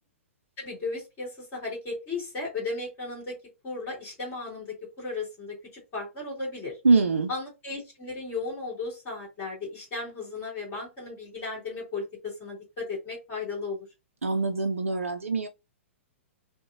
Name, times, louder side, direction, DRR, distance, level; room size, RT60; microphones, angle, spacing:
voice 1, 0.6-3.4 3.6-6.8 7.3-13.9, left 3 dB, 30° left, 1.7 m, -35 dB
voice 2, 6.8-7.3 14.2-15.5, right 3 dB, 85° right, 0.4 m, -23 dB
2.8 x 2.1 x 2.4 m
figure-of-eight pair, 115°, 7 cm